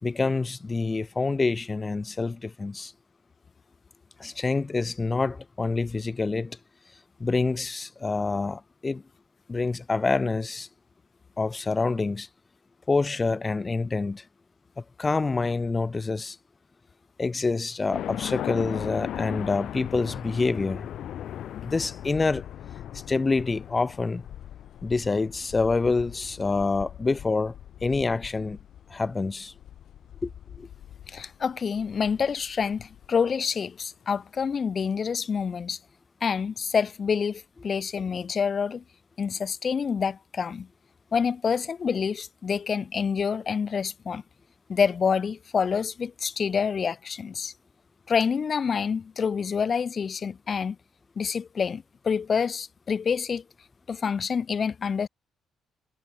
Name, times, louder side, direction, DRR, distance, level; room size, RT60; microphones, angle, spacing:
voice 1, 0.0-2.9 4.2-6.6 7.2-9.0 9.5-10.7 11.4-12.3 12.9-14.2 15.0-16.4 17.2-20.9 21.6-22.5 23.1-24.2 24.8-27.5 27.8-28.6 28.9-29.5 30.2-30.3 30.6-30.7, left 3 dB, 25° left, 5.3 m, -26 dB
sound 1, 17.9-33.1, left 11 dB, 70° left, 7.8 m, -39 dB
voice 2, 31.1-35.8 36.2-38.8 39.2-40.7 41.1-44.2 44.7-47.5 48.1-50.8 51.2-53.4 53.9-55.1, left 6 dB, 45° left, 7.4 m, -27 dB
cardioid pair, 90°, 0 cm